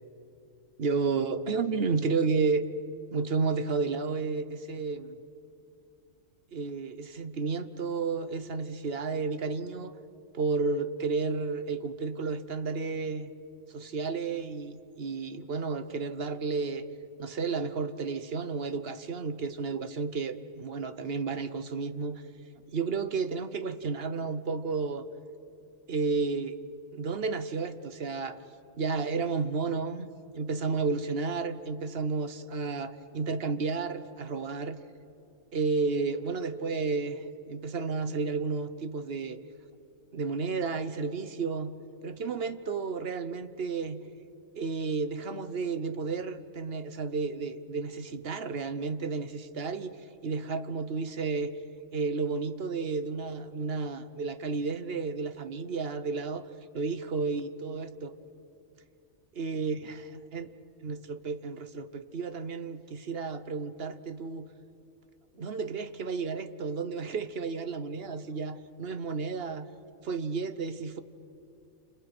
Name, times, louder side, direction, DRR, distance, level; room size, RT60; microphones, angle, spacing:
voice 1, 0.8-2.6 3.1-5.2 6.5-9.9 10.3-13.3 13.7-16.9 17.2-22.2 22.7-25.1 25.9-26.6 26.9-28.4 28.8-30.1 30.3-34.8 35.5-39.4 40.1-41.7 42.0-44.0 44.6-50.0 50.2-51.5 51.9-56.5 56.7-58.2 59.4-60.0 60.3-60.5 60.8-64.5 65.3-69.7 70.0-71.0, right 4 dB, 50° right, 12 dB, 1.1 m, -32 dB
29.5 x 27.5 x 6.1 m, 2.7 s
omnidirectional pair, 1.5 m